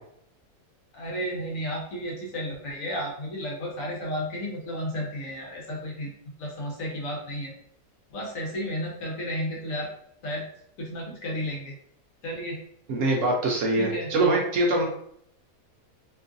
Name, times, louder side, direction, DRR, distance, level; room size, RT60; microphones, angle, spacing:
voice 1, 0.9-6.1 6.4-7.5 8.1-9.9 10.2-10.4 10.8-11.7 12.2-12.6 13.8-14.1, equal, 65° left, -2 dB, 1.1 m, -32 dB
voice 2, 12.9-14.8, right 2 dB, 65° right, -1 dB, 0.9 m, -23 dB
3.0 x 2.4 x 2.5 m, 0.69 s
omnidirectional pair, 1.6 m